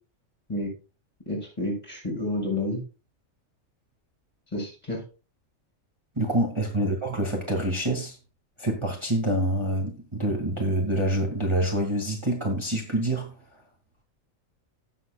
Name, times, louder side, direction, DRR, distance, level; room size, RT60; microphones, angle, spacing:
voice 1, 1.3-2.8 4.5-5.0, left 1 dB, 30° left, 6.5 m, -30 dB
voice 2, 6.2-8.2 8.6-13.4, right 1 dB, 20° right, 1.9 m, -26 dB
17.0 x 7.1 x 2.3 m
omnidirectional pair, 1.3 m